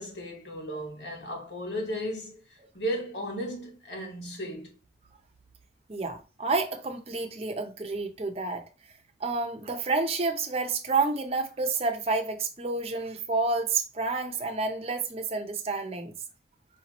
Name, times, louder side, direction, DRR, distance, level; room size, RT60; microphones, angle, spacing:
voice 1, 0.0-4.8, equal, 75° left, 1.4 m, -35 dB
voice 2, 5.9-8.6 9.2-16.1, right 3 dB, 35° right, 0.6 m, -29 dB
4.9 x 2.9 x 3.0 m
head